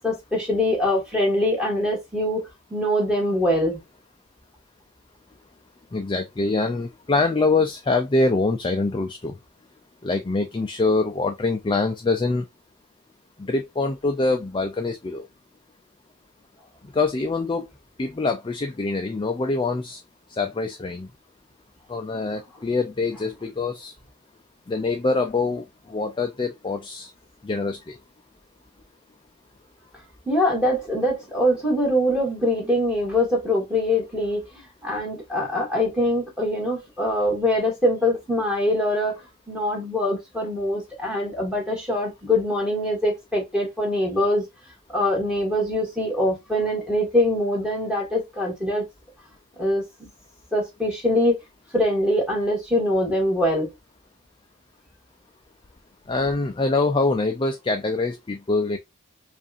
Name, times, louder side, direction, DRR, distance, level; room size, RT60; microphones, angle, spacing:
voice 1, 0.0-2.4 2.7-3.8 30.3-34.5 34.8-39.2 39.5-44.4 44.9-48.8 49.6-50.1 50.5-51.4 51.7-53.7, left 1 dB, 5° right, 1.9 m, -23 dB
voice 2, 5.9-9.3 10.0-12.4 13.4-15.3 16.9-17.7 18.0-20.0 20.4-21.1 21.9-23.9 24.7-27.1 27.4-27.9 56.1-58.8, left 3 dB, 25° left, 0.4 m, -24 dB
5.2 x 2.5 x 2.5 m
head